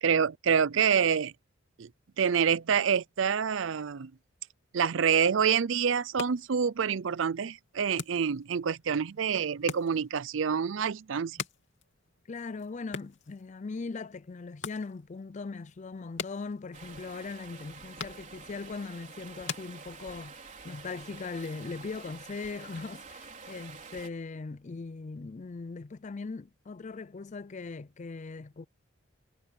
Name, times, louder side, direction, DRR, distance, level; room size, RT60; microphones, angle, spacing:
voice 1, 0.0-1.3 1.8-1.9 2.2-4.1 4.7-11.4, right 7 dB, 65° right, 0.5 m, -27 dB
sound 1, 5.9-20.4, left 5 dB, 60° left, 3.1 m, -45 dB
voice 2, 12.3-28.7, left 4 dB, 35° left, 0.4 m, -40 dB
Stream, 16.7-24.1, right 5 dB, 40° right, 3.7 m, -48 dB
head